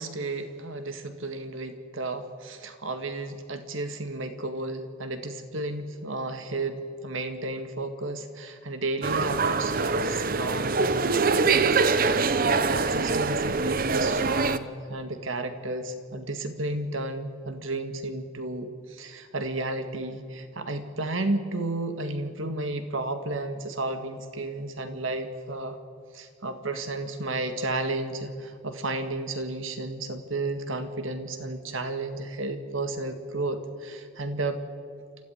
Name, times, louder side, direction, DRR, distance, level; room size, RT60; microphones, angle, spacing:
voice 1, 0.0-25.8 26.1-34.6, right 2 dB, 75° right, 8 dB, 2.0 m, -33 dB
sound 1, 9.0-14.6, right 4 dB, 45° right, 0.8 m, -24 dB
28.0 x 13.5 x 9.3 m, 2.1 s
head